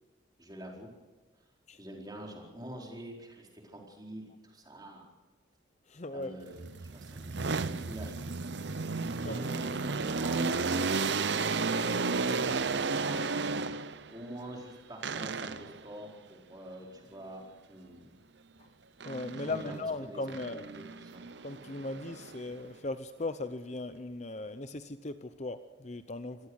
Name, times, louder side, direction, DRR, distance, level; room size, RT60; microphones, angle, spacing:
voice 1, 0.4-0.9 1.8-5.0 6.1-8.3 9.1-11.1 11.4-13.3 14.1-18.1 19.4-21.2, right 1 dB, 20° right, -1 dB, 4.5 m, -46 dB
voice 2, 5.9-6.3 9.2-9.4 19.0-20.7 21.4-26.4, left 2 dB, 35° left, 10 dB, 0.7 m, -38 dB
sound 1, 6.5-14.1 15.0-15.8 19.0-19.8 20.3-22.7, right 4 dB, 60° right, 0.7 m, -33 dB
26.0 x 17.0 x 6.5 m, 1.3 s
head